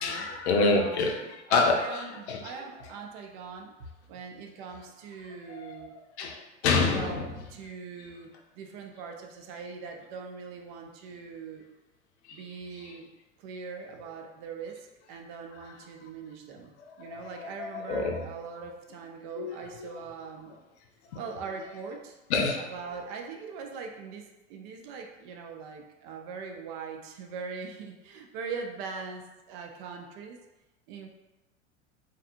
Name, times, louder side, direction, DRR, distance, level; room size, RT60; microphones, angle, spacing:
voice 1, 0.0-1.2 1.5-2.0 2.3-2.4 5.5-5.6 6.2-7.3 17.0-17.2 17.6-18.2 19.4-19.9 22.3-22.6, left 3 dB, 60° left, 2 dB, 0.6 m, -26 dB
voice 2, 0.7-3.7 4.1-5.9 6.9-11.6 12.3-13.1 13.4-20.5 21.1-22.2 22.6-30.4 30.9-31.1, right 5 dB, 45° right, 3 dB, 0.4 m, -41 dB
2.6 x 2.4 x 2.5 m, 1.0 s
figure-of-eight pair, 85°, 37 cm